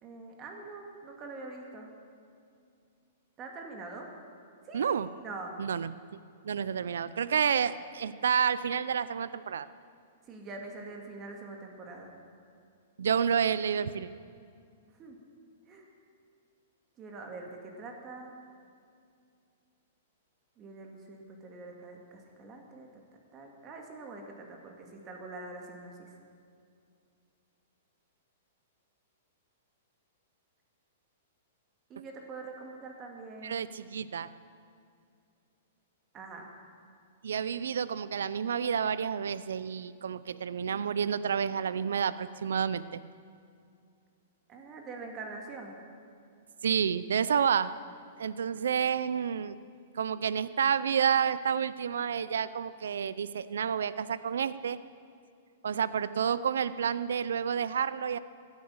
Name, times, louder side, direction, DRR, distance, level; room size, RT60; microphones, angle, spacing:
voice 1, 0.0-1.9 3.4-4.1 4.6-5.5 10.2-12.1 14.9-15.2 15.7-15.9 17.0-18.4 20.6-22.9 23.3-26.1 31.9-33.7 36.1-36.5 44.5-45.8, right 3 dB, 25° right, 2 dB, 2.4 m, -44 dB
voice 2, 4.7-5.1 5.6-5.9 6.4-9.7 13.0-14.1 33.4-34.3 37.2-43.0 46.6-47.7 48.2-49.5 49.9-54.8 55.6-58.2, right 7 dB, 85° right, 16 dB, 0.5 m, -29 dB
16.0 x 10.5 x 7.2 m, 2.4 s
hypercardioid pair, 140°, 0 cm